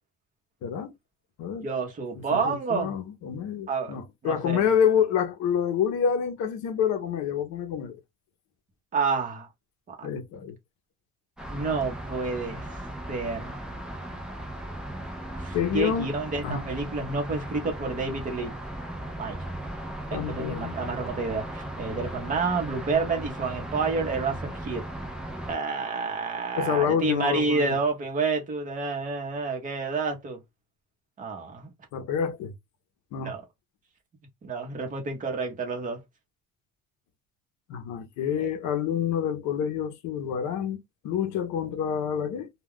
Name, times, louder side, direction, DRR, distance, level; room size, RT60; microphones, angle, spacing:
voice 1, 0.6-0.9 1.4-1.7 2.2-8.0 10.0-10.6 15.5-16.1 16.4-16.6 20.1-21.0 26.5-27.8 31.9-32.5 33.1-33.3 37.7-42.5, left 8 dB, 60° left, 0.7 m, -28 dB
voice 2, 1.6-2.9 3.7-4.7 8.9-9.5 11.5-12.6 13.1-13.6 15.4-18.5 19.2-19.4 20.1-24.8 25.5-30.4 31.2-31.7 33.2-33.4 34.4-36.0 38.4-38.5, right 4 dB, 25° right, 0.8 m, -29 dB
sound 1, 11.4-25.6, right 1 dB, ahead, 0.4 m, -37 dB
2.3 x 2.2 x 3.5 m
cardioid pair, 170°, 32 cm